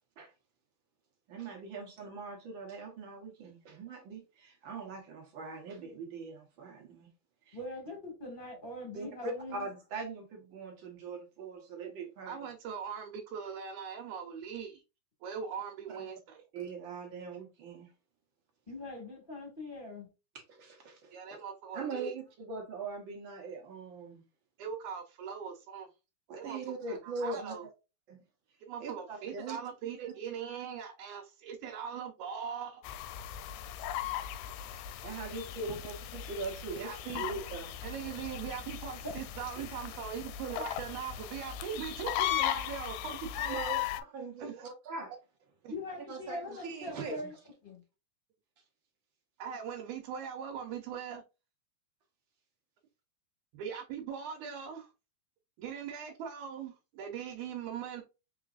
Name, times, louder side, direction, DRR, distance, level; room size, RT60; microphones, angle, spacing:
voice 1, 1.3-7.1 7.5-7.6 8.9-12.4 15.9-16.1 16.5-17.9 20.5-21.4 21.7-24.2 26.3-27.5 28.1-28.2 28.8-29.6 29.8-30.1 35.0-37.7 43.5-43.8 44.1-45.1 46.1-47.3, right 3 dB, 60° right, 1.3 m, -41 dB
voice 2, 7.5-9.7 18.7-20.1 45.7-47.3 47.6-47.8, left 1 dB, 25° left, 1.3 m, -42 dB
voice 3, 12.3-14.8 15.2-16.5 21.1-22.1 24.6-25.9 26.4-26.6 26.9-27.6 28.6-32.8 36.7-37.2 37.8-43.8 44.4-44.7 45.6-45.7 49.4-51.2 53.5-54.9 55.6-58.0, right 7 dB, 80° right, 2.2 m, -40 dB
sound 1, 32.8-44.0, left 11 dB, 80° left, 1.8 m, -37 dB
4.9 x 3.9 x 2.4 m
omnidirectional pair, 3.5 m